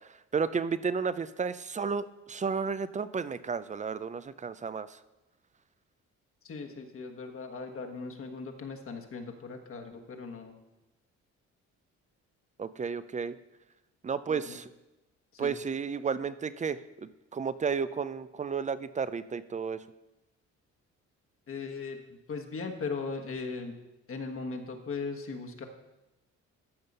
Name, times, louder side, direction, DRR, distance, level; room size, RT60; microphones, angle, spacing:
voice 1, 0.1-5.0 12.6-13.4 14.0-14.7 15.4-19.8, right 5 dB, 25° right, 15 dB, 0.5 m, -32 dB
voice 2, 6.4-10.5 14.3-14.6 15.3-15.5 21.5-23.7 24.1-25.6, left 4 dB, 45° left, 3 dB, 1.4 m, -38 dB
13.5 x 5.5 x 5.4 m, 1.0 s
cardioid pair, 90°, 30 cm